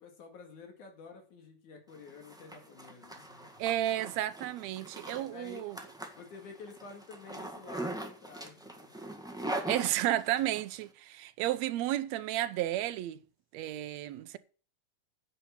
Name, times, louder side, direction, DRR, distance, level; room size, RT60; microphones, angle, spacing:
voice 1, 0.0-3.6 5.1-5.7 6.2-9.1, left 4 dB, 75° left, 3.6 m, -50 dB
Zipper (clothing), 1.9-10.6, right 1 dB, 5° right, 0.5 m, -41 dB
voice 2, 3.6-5.8 9.7-13.2 13.5-14.4, right 13 dB, 75° right, 1.8 m, -32 dB
10.5 x 7.0 x 7.2 m
omnidirectional pair, 3.5 m